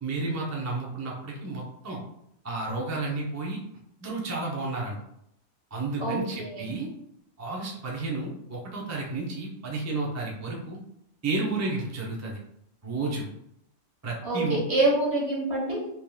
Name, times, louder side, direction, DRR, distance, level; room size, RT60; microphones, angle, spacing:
voice 1, 0.0-2.0 2.4-3.6 4.0-5.0 5.7-6.9 7.4-10.8 11.2-12.4 12.8-13.3 14.0-14.6, right 3 dB, 25° right, -3 dB, 0.3 m, -31 dB
voice 2, 6.0-6.7 14.2-15.8, right 2 dB, 55° right, -3 dB, 1.5 m, -26 dB
5.2 x 3.0 x 2.3 m, 0.79 s
omnidirectional pair, 1.4 m